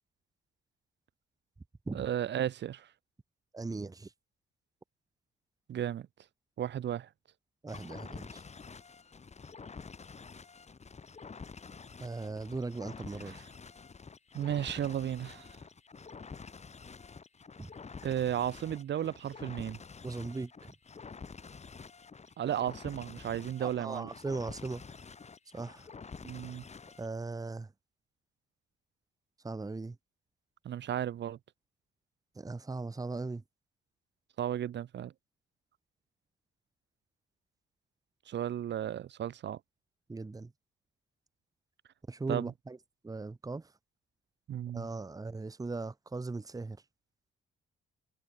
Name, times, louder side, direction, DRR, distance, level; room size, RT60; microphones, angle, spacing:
voice 1, 1.9-2.9 5.7-6.1 6.6-7.1 13.2-13.4 14.3-15.5 18.0-19.8 22.4-24.1 26.2-26.6 30.6-31.4 34.4-35.1 38.3-39.6 42.3-42.5 44.5-44.9, right 10 dB, 60° right, 1.6 m, -34 dB
voice 2, 3.5-4.1 7.6-8.4 12.0-13.3 17.6-17.7 20.0-20.7 23.6-24.8 25.5-25.8 27.0-27.7 29.4-29.9 32.4-33.4 40.1-40.5 42.1-42.8 43.0-43.7 44.7-46.8, right 3 dB, 20° right, 1.3 m, -38 dB
sound 1, 7.7-27.1, left 5 dB, 35° left, 4.6 m, -48 dB
cardioid pair, 90°, 20 cm